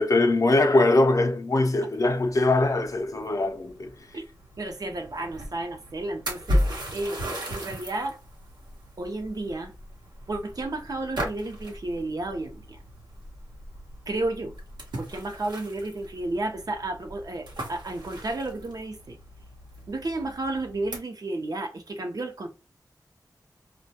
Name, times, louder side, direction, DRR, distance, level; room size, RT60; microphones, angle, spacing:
voice 1, 0.0-3.9, left 2 dB, 50° left, 0.5 m, -22 dB
sound 1, 1.9-21.0, equal, 85° right, 0.9 m, -36 dB
voice 2, 4.6-8.2 9.0-9.7 10.3-12.8 14.1-14.5 15.0-19.2 19.9-22.5, right 2 dB, 60° right, 0.6 m, -32 dB
2.2 x 2.2 x 2.7 m
cardioid pair, 50°, 7 cm